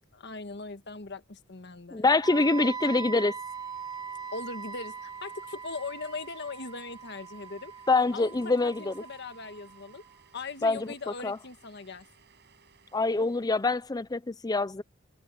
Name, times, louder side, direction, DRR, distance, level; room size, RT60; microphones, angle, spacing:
voice 1, 0.1-2.1 2.6-2.7 4.3-7.7 8.1-10.0 10.3-12.1, left 3 dB, 60° left, 1.5 m, -40 dB
voice 2, 1.9-3.3 7.9-8.9 10.6-10.9 11.2-11.4 12.9-14.8, left 3 dB, 20° left, 0.5 m, -25 dB
Wind instrument woodwind instrument, 2.2-10.2, right 6 dB, 20° right, 1.0 m, -41 dB
Domestic sounds home sounds, 3.0-14.0, right 6 dB, 55° right, 7.1 m, -61 dB
open air
head